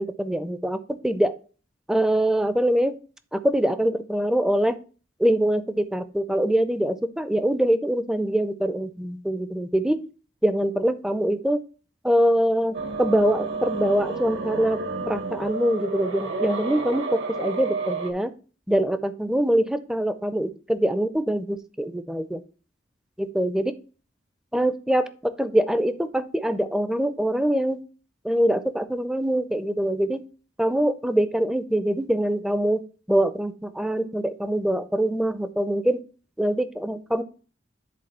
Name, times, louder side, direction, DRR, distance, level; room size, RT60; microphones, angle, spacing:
voice 1, 0.0-1.3 1.9-3.0 3.3-4.8 5.2-10.0 10.4-11.6 12.0-14.8 15.1-18.3 18.7-22.4 23.2-23.7 24.5-27.8 28.2-30.2 30.6-32.8 33.1-36.0 36.4-37.2, right 1 dB, 5° right, 12 dB, 0.5 m, -24 dB
sound 1, 12.7-18.1, right 4 dB, 70° right, 1.4 m, -30 dB
10.0 x 3.8 x 4.2 m, 0.38 s
head